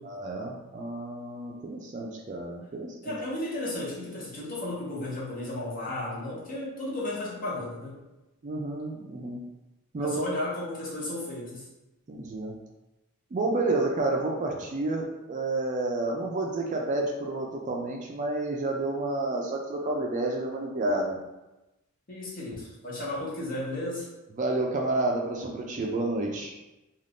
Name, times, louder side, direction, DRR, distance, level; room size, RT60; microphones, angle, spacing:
voice 1, 0.0-3.1 8.4-9.4 9.9-10.4 12.1-12.5 13.3-21.2 24.4-26.5, right 2 dB, 35° right, 0 dB, 0.3 m, -30 dB
voice 2, 3.0-8.0 10.0-11.7 22.1-24.1, left 1 dB, 40° left, -5 dB, 0.8 m, -34 dB
2.5 x 2.3 x 3.4 m, 1.0 s
head